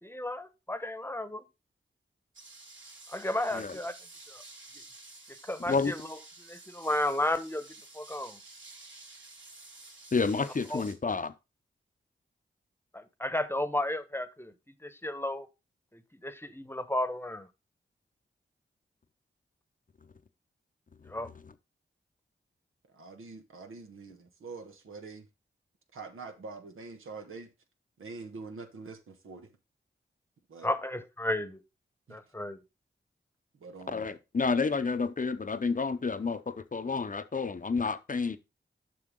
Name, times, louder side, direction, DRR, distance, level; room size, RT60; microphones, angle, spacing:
voice 1, 0.0-1.4 3.1-3.9 4.3-4.4 5.4-7.6 7.9-8.4 10.7-10.8 12.9-14.5 14.8-15.5 15.9-17.5 21.1-21.3 30.6-31.6 32.1-32.6, left 1 dB, 10° left, 1.0 m, -33 dB
sound 1, 2.3-10.9, right 2 dB, 70° right, 2.8 m, -51 dB
voice 2, 10.1-11.3 33.9-38.4, left 4 dB, 40° left, 0.7 m, -30 dB
voice 3, 22.9-25.3 25.9-27.5 28.0-29.5 30.5-30.7 32.1-32.2 33.5-34.0, right 4 dB, 85° right, 1.3 m, -45 dB
7.6 x 5.8 x 3.7 m
cardioid pair, 40°, 21 cm